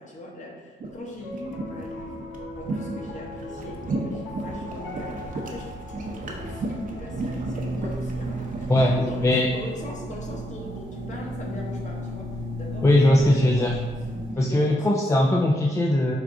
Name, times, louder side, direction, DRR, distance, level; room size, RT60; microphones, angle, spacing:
voice 1, 0.0-2.2 2.6-13.7 14.3-15.0, left 1 dB, 40° left, -2 dB, 1.1 m, -40 dB
sound 1, 0.8-8.8, right 2 dB, 40° right, 0.7 m, -34 dB
Piano, 1.1-11.5, left 2 dB, 85° left, 0.6 m, -42 dB
sound 2, 7.1-14.3, equal, 70° right, 1.0 m, -33 dB
voice 2, 12.8-13.8 14.4-16.1, left 1 dB, 15° left, -2 dB, 0.4 m, -20 dB
4.8 x 2.4 x 3.6 m, 1.4 s
cardioid pair, 90°, 20 cm